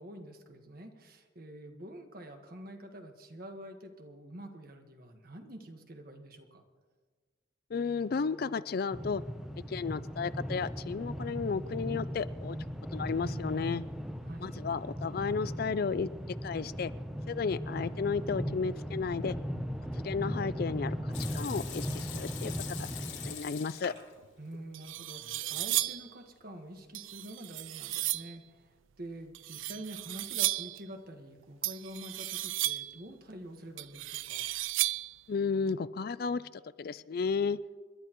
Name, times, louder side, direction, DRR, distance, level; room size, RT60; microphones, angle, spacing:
voice 1, 0.0-6.6 14.2-14.5 24.4-28.7 29.0-34.5, right 1 dB, 50° right, 5 dB, 1.5 m, -47 dB
voice 2, 7.7-9.2 9.7-12.6 12.9-13.8 14.4-16.1 16.4-16.9 17.3-19.4 19.9-22.5 22.9-23.9 35.3-36.4 36.8-37.6, left 5 dB, 50° left, 16 dB, 0.4 m, -33 dB
sound 1, 8.9-23.3, equal, ahead, 0.7 m, -38 dB
Water tap faucet / Sink (filling or washing) / Liquid, 21.1-24.1 24.5-24.6 25.2-25.8, left 9 dB, 80° left, 2.5 m, -44 dB
sound 2, 24.2-24.3 24.7-26.1 26.9-28.3 29.3-30.8 31.6-33.0 33.8-35.2, right 16 dB, 80° right, 0.4 m, -34 dB
29.0 x 12.0 x 3.1 m, 1.4 s
head